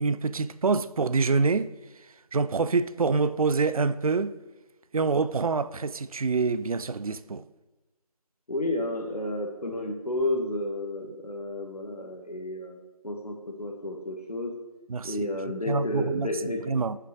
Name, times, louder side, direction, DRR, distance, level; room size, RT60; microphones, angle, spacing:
voice 1, 0.0-1.7 2.3-4.4 4.9-7.4 14.9-15.3 15.7-16.3 16.7-17.0, right 4 dB, 65° right, 0.4 m, -26 dB
voice 2, 8.5-12.8 13.0-14.5 15.0-16.6, left 1 dB, 80° left, 1.4 m, -31 dB
5.9 x 5.7 x 6.0 m
figure-of-eight pair, 165°, 20 cm